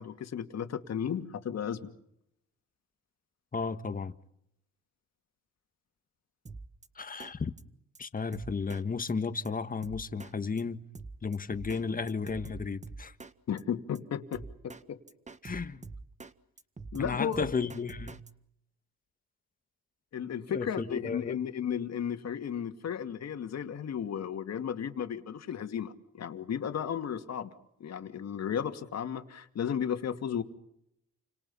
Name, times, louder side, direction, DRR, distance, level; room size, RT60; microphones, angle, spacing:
voice 1, 0.0-1.9 13.5-15.0 16.9-17.7 20.1-27.5 27.8-30.4, left 8 dB, 60° left, 2.5 m, -34 dB
voice 2, 3.5-4.1 7.0-7.5 8.0-10.8 11.2-13.1 15.4-15.8 17.0-18.2 20.5-21.4, left 5 dB, 30° left, 1.7 m, -33 dB
Drum kit, 6.5-6.9 7.2-7.3 7.6-7.7 8.0-8.1 8.3-8.8 9.1-9.2 9.5-9.6 9.8-10.3 10.6-10.7 11.0-11.8 12.1-13.3 13.6-13.7 14.0-14.1 14.3-14.8 15.1-16.3 16.6-18.3, right 3 dB, 25° right, 1.6 m, -44 dB
29.5 x 26.5 x 5.7 m
cardioid pair, 90°, 30 cm